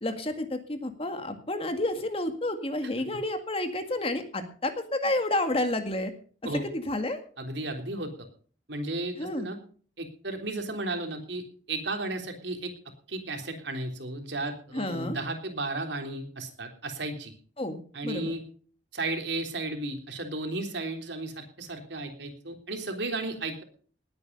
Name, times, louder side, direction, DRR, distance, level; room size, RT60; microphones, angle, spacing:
voice 1, 0.0-6.1 6.5-7.2 9.2-9.5 14.7-15.2 17.6-17.8 18.0-18.3, left 1 dB, 30° left, 7 dB, 2.0 m, -30 dB
voice 2, 7.4-8.1 8.7-9.6 10.0-11.4 11.7-12.7 13.1-17.3 17.9-18.4 18.9-23.6, right 2 dB, 80° right, 4 dB, 3.4 m, -34 dB
19.5 x 8.9 x 5.4 m, 0.43 s
head